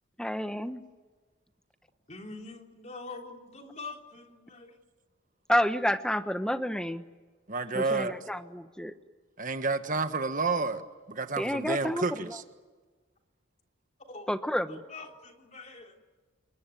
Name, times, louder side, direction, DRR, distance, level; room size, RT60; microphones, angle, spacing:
voice 1, 0.2-0.8 5.5-7.0 7.7-8.9 11.4-12.4 14.3-14.8, equal, 5° left, 9 dB, 1.1 m, -29 dB
voice 2, 2.1-4.8 7.6-7.7 8.0-8.1 14.1-14.3 14.7-15.9, left 3 dB, 35° left, 2 dB, 3.4 m, -44 dB
voice 3, 7.5-8.1 9.4-10.8 11.1-12.4, right 3 dB, 40° right, 9 dB, 1.5 m, -30 dB
28.5 x 22.5 x 9.3 m, 1.4 s
head